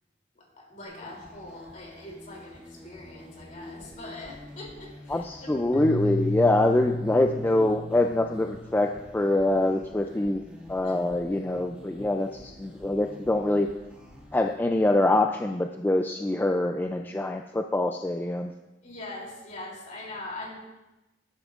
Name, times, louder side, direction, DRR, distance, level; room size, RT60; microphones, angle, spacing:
voice 1, 0.3-5.6 10.8-11.0 18.8-20.6, left 2 dB, 45° left, -2 dB, 3.1 m, -42 dB
sound 1, 0.8-14.5, left 2 dB, 5° right, 1.9 m, -47 dB
voice 2, 5.1-10.4 10.7-13.7 14.3-18.5, left 2 dB, 10° left, 4 dB, 0.3 m, -25 dB
Keyboard (musical), 5.7-8.8, left 1 dB, 80° left, 2.6 m, -32 dB
12.0 x 10.0 x 2.5 m, 1.0 s
head